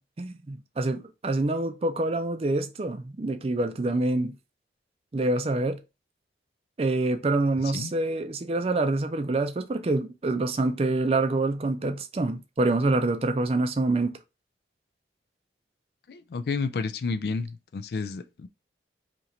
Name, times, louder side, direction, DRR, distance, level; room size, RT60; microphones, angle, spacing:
voice 1, 0.0-4.3 5.1-5.8 6.8-14.2, right 2 dB, 35° right, 0.4 m, -26 dB
voice 2, 16.1-18.5, left 4 dB, 60° left, 0.3 m, -31 dB
2.9 x 2.6 x 4.2 m
head